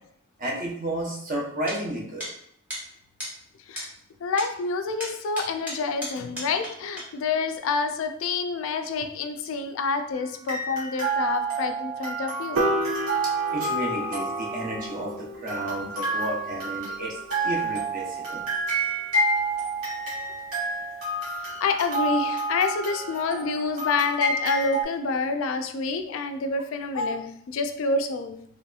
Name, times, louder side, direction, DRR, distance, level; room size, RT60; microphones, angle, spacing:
voice 1, 0.4-2.2 13.2-18.4, right 1 dB, 40° right, -2 dB, 0.7 m, -32 dB
sound 1, 1.7-1.8 2.2-2.3 2.7-2.8 3.2-3.3 3.8-3.9 4.4-4.5 5.0-6.7 7.0-7.1, equal, 10° right, 0.9 m, -34 dB
voice 2, 4.2-12.6 21.6-28.4, left 4 dB, 65° left, 8 dB, 0.3 m, -27 dB
sound 2, 10.1-10.2 10.5-15.1 15.5-24.8, right 2 dB, 90° right, 1.4 m, -29 dB
Piano, 12.6-18.9, right 1 dB, 65° right, 0.4 m, -33 dB
3.0 x 2.7 x 2.3 m, 0.67 s
head